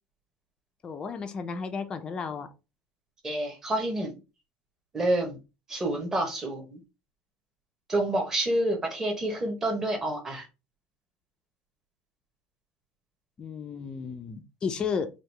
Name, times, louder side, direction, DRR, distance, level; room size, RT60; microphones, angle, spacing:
voice 1, 0.8-2.5 13.4-15.1, left 5 dB, 20° left, 0.4 m, -33 dB
voice 2, 3.2-4.1 4.9-5.4 5.7-6.8 7.9-10.4, right 1 dB, 10° right, 0.9 m, -28 dB
4.6 x 2.3 x 3.3 m
cardioid pair, 180°, 4 cm